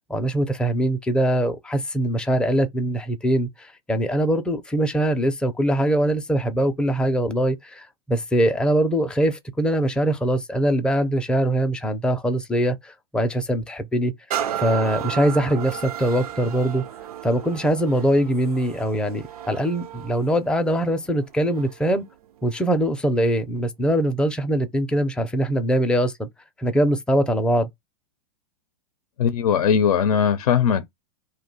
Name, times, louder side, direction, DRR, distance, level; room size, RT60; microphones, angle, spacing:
voice 1, 0.1-14.1 14.6-16.9 17.2-22.0 22.4-26.3 26.6-27.7, right 1 dB, 5° left, 0.4 m, -22 dB
sound 1, 14.3-21.9 22.5-22.6, right 10 dB, 85° right, 0.5 m, -34 dB
voice 2, 29.2-30.9, left 7 dB, 85° left, 0.5 m, -19 dB
2.6 x 2.2 x 3.9 m
hypercardioid pair, 125°, 19 cm